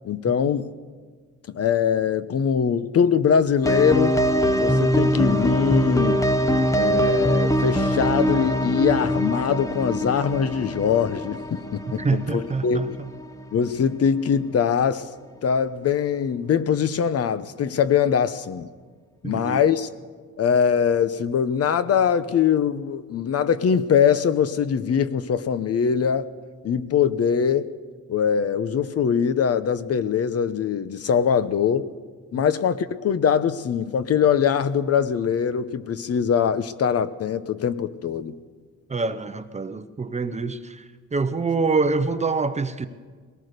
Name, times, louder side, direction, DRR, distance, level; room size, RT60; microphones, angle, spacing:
voice 1, 0.0-0.7 1.5-4.2 4.6-6.3 6.7-13.0 13.5-15.1 15.4-18.7 19.2-19.9 20.4-26.3 26.6-27.7 28.1-31.9 32.3-38.4, left 7 dB, 55° left, 0.9 m, -22 dB
sound 1, 3.6-13.5 13.8-13.9, equal, 10° left, 0.9 m, -23 dB
voice 2, 12.0-13.1 19.2-19.6 38.9-40.8 41.1-42.9, right 4 dB, 25° right, 0.7 m, -25 dB
22.0 x 19.0 x 6.7 m
wide cardioid pair, 165°, 30 cm